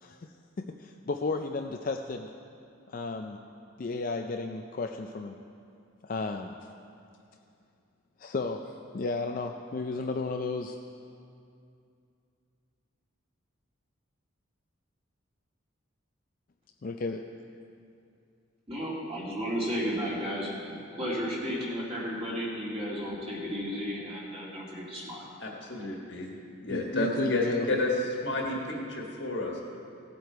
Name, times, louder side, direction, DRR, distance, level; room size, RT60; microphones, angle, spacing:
voice 1, 0.6-2.3 2.9-3.4 3.8-5.4 6.0-6.5 8.2-10.7 16.8-17.2 26.7-27.7, left 3 dB, 40° left, 4 dB, 0.4 m, -33 dB
voice 2, 18.7-25.3, equal, 30° right, -5 dB, 2.4 m, -33 dB
voice 3, 25.4-26.3 26.6-27.9 28.2-29.6, left 2 dB, 55° left, -1 dB, 1.7 m, -31 dB
17.0 x 7.9 x 4.6 m, 2.5 s
head